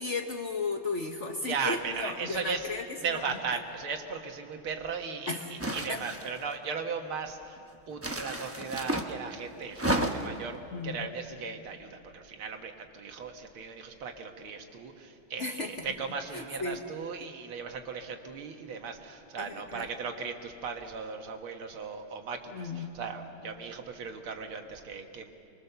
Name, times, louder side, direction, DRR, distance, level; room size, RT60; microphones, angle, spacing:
voice 1, 0.0-2.8 5.3-5.5 5.9-6.0 10.7-11.1 15.4-15.9 16.3-16.8 19.4-19.9 22.5-22.9, left 3 dB, 45° left, 4 dB, 1.1 m, -34 dB
voice 2, 1.4-2.7 3.0-7.6 7.9-25.3, right 5 dB, 85° right, 4 dB, 2.3 m, -37 dB
sound 1, 5.6-6.5 8.0-9.1 9.7-10.4, right 1 dB, 15° right, 0.4 m, -31 dB
24.5 x 22.0 x 6.9 m, 2.6 s
omnidirectional pair, 2.3 m